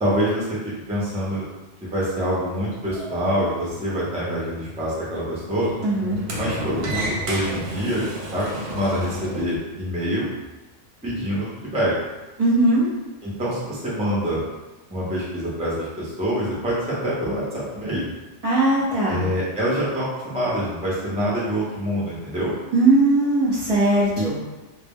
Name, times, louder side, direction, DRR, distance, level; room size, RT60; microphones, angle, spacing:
voice 1, 0.0-1.5 1.8-5.7 6.4-8.0 8.3-10.3 11.0-11.9 13.2-14.4 14.9-18.1 19.0-22.5 24.1-24.3, equal, 10° right, -6 dB, 0.4 m, -25 dB
Sliding door, 2.6-9.6, right 1 dB, 65° right, 0.8 m, -33 dB
voice 2, 5.8-6.2 12.4-12.9 18.4-19.2 22.7-24.4, right 2 dB, 35° right, -9 dB, 0.8 m, -19 dB
2.2 x 2.1 x 3.5 m, 1.1 s
omnidirectional pair, 1.2 m